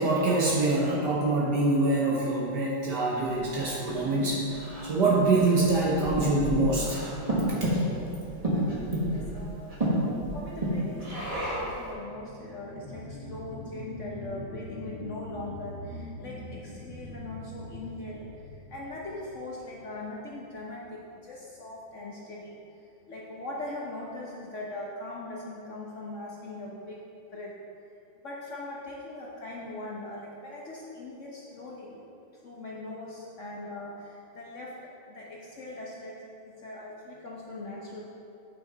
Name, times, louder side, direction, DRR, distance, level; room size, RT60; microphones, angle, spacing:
voice 1, 0.0-7.0 7.6-7.7, right 2 dB, 60° right, -4 dB, 1.4 m, -25 dB
Breathing, 3.3-11.8, right 1 dB, 20° right, 1.1 m, -30 dB
voice 2, 9.0-9.7 10.3-18.3 18.7-22.6 23.1-27.0 27.3-27.6 28.2-32.0 32.4-34.8 35.1-36.2 36.6-38.0, left 2 dB, 60° left, -4 dB, 0.8 m, -40 dB
sound 1, 11.8-20.7 21.1-21.2, left 1 dB, 80° left, 2.4 m, -43 dB
8.5 x 5.7 x 4.0 m, 2.7 s
omnidirectional pair, 2.2 m